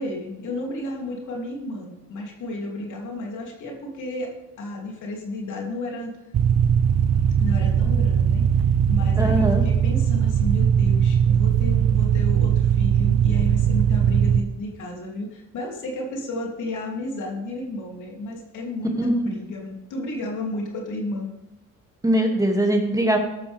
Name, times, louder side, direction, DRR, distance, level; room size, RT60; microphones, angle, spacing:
voice 1, 0.0-6.1 7.4-8.5 8.9-21.3, left 1 dB, 80° left, -1 dB, 3.3 m, -32 dB
sound 1, 6.3-14.4, right 8 dB, 60° right, 0.8 m, -19 dB
voice 2, 9.2-9.6 19.0-19.3 22.0-23.2, right 1 dB, 10° right, 1 dB, 2.5 m, -21 dB
14.0 x 12.0 x 3.6 m, 0.94 s
cardioid pair, 90°, 30 cm